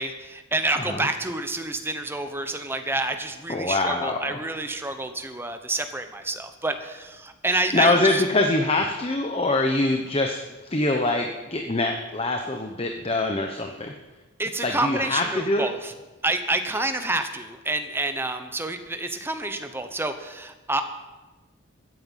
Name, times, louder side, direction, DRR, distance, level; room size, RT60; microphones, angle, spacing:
voice 1, 0.0-7.9 14.4-15.9 16.2-20.8, right 2 dB, 10° right, 7 dB, 1.0 m, -28 dB
voice 2, 0.8-1.1 3.5-4.4 7.7-13.9 14.6-15.7, left 2 dB, 25° left, 4 dB, 1.0 m, -24 dB
14.5 x 9.3 x 7.4 m, 1.1 s
head